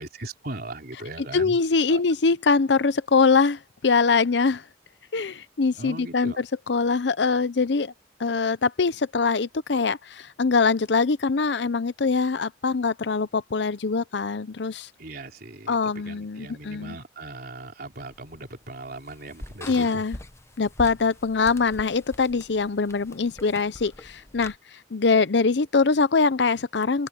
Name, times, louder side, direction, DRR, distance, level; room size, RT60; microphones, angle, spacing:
voice 1, 0.0-1.6 1.9-2.0 5.8-6.4 15.0-20.0, right 2 dB, 60° right, 3.7 m, -39 dB
voice 2, 1.2-4.6 5.1-7.9 8.2-14.9 15.7-17.0 19.7-20.2 20.6-24.5 24.9-27.1, left 4 dB, 75° left, 0.7 m, -23 dB
sound 1, 17.9-24.6, left 1 dB, 15° left, 0.9 m, -43 dB
head